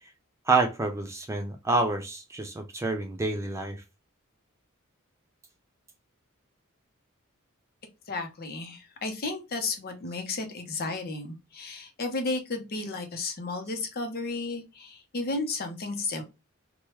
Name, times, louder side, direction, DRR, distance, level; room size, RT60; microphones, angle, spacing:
voice 1, 0.5-3.8, right 3 dB, 15° right, 0.3 m, -28 dB
voice 2, 8.1-16.2, left 3 dB, 45° left, 0.7 m, -33 dB
3.0 x 2.2 x 2.9 m
head